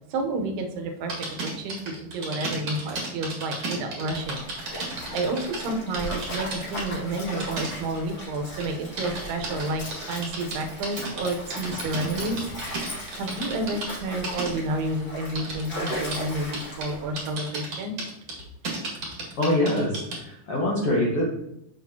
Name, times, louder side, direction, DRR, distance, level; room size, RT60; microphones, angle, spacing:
voice 1, 0.1-4.4 5.1-12.5 13.2-17.9, right 2 dB, 75° right, 3 dB, 2.8 m, -30 dB
sound 1, 1.1-5.6 5.9-6.9 7.3-8.1 8.6-13.9 14.2-14.5 15.3-16.2 16.5-16.9 17.2-20.2, right 3 dB, 45° right, 1.9 m, -33 dB
Stream, 4.1-17.2, equal, 35° left, 1.7 m, -37 dB
voice 2, 19.4-21.2, left 1 dB, 90° left, -5 dB, 1.2 m, -24 dB
7.9 x 6.9 x 2.8 m, 0.81 s
omnidirectional pair, 5.1 m